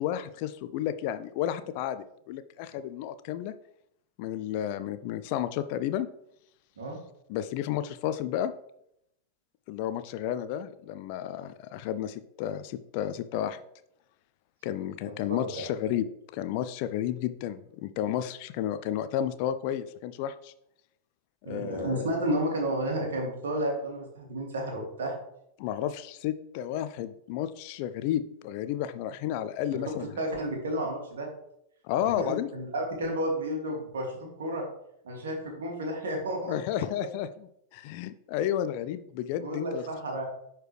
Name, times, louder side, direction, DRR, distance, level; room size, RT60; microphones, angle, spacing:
voice 1, 0.0-3.5 4.2-6.1 7.3-8.5 9.7-13.6 14.6-16.1 16.3-20.5 21.5-22.1 25.6-30.1 31.8-32.5 36.5-39.8, left 11 dB, 45° left, 12 dB, 0.4 m, -32 dB
voice 2, 15.1-15.6 21.4-25.1 29.7-29.8 30.2-31.3 32.2-34.6 35.0-36.6 39.4-40.3, right 1 dB, 65° right, 0 dB, 2.4 m, -32 dB
11.0 x 4.5 x 3.2 m, 0.76 s
figure-of-eight pair, 90°, 0 cm